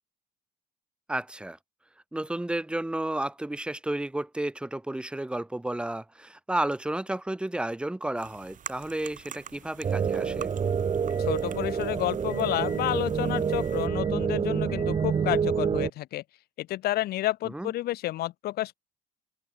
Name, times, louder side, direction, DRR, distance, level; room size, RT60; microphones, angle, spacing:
voice 1, 1.1-1.6 2.1-10.5 17.4-17.7, right 1 dB, 5° right, 0.9 m, -32 dB
sound 1, 8.2-13.9, right 9 dB, 50° right, 6.3 m, -46 dB
Motor vehicle (road) / Engine, 9.4-15.5, left 9 dB, 50° left, 5.8 m, -53 dB
sound 2, 9.8-15.9, right 6 dB, 35° right, 1.2 m, -27 dB
voice 2, 11.2-16.2 16.6-18.7, left 15 dB, 65° left, 0.7 m, -30 dB
open air
cardioid pair, 110°, 17 cm